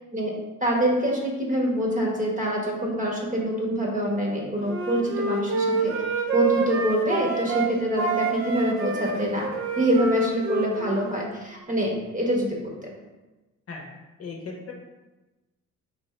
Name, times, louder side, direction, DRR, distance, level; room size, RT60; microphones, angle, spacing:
voice 1, 0.6-5.9 6.3-9.5 9.8-12.7, right 1 dB, 25° right, -2 dB, 1.1 m, -25 dB
Wind instrument woodwind instrument, 4.6-7.7 8.0-11.3, right 3 dB, 45° right, 0.8 m, -27 dB
voice 2, 14.2-14.7, left 4 dB, 50° left, 1 dB, 0.8 m, -36 dB
4.4 x 2.9 x 3.2 m, 1.1 s
cardioid pair, 90°, 30 cm